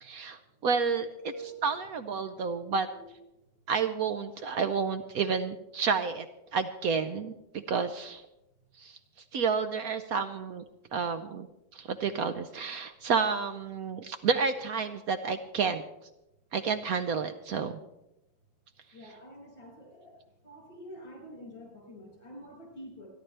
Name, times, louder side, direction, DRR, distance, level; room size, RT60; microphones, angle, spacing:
voice 1, 0.0-1.3 1.6-2.9 3.7-6.3 6.5-8.2 8.8-9.0 9.3-10.6 10.9-11.5 11.7-15.8 16.5-17.8 19.0-19.1, right 5 dB, 65° right, 9 dB, 1.0 m, -30 dB
voice 2, 2.2-2.6 2.9-3.0 18.9-20.1 20.4-23.1, right 1 dB, 85° left, -1 dB, 6.4 m, -47 dB
27.5 x 11.0 x 3.3 m, 0.91 s
omnidirectional pair, 2.0 m